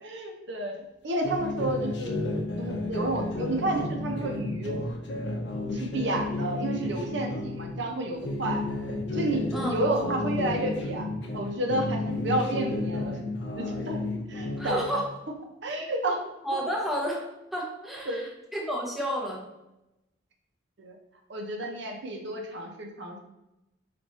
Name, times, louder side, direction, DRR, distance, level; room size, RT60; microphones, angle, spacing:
voice 1, 0.0-2.2 2.6-4.8 5.7-8.6 9.1-11.1 11.3-13.2 13.6-14.0 14.3-15.0 15.6-16.2 18.1-18.3 20.8-21.0 21.3-23.2, right 1 dB, 65° right, 3 dB, 0.7 m, -31 dB
sound 1, 1.2-7.7 8.1-11.4 11.7-14.8, left 2 dB, 60° left, 0.7 m, -32 dB
voice 2, 14.6-15.1 16.4-19.5, equal, ahead, -3 dB, 0.6 m, -31 dB
4.7 x 2.5 x 4.1 m, 0.94 s
head